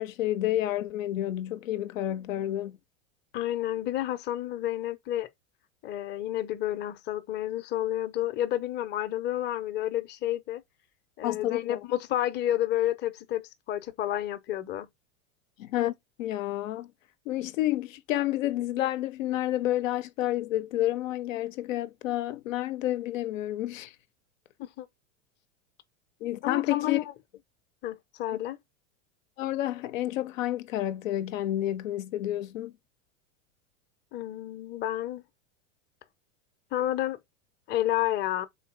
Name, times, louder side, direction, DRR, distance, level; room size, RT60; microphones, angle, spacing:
voice 1, 0.0-2.8 11.2-11.8 15.6-16.9 17.3-23.9 26.2-27.0 29.4-32.7, left 14 dB, 85° left, 0.6 m, -30 dB
voice 2, 3.3-5.3 5.8-10.6 11.2-14.9 24.6-24.9 26.4-27.0 27.8-28.6 34.1-35.2 36.7-37.2 37.7-38.5, left 13 dB, 30° left, 0.6 m, -30 dB
3.9 x 2.7 x 4.7 m
supercardioid pair, 120°, 38 cm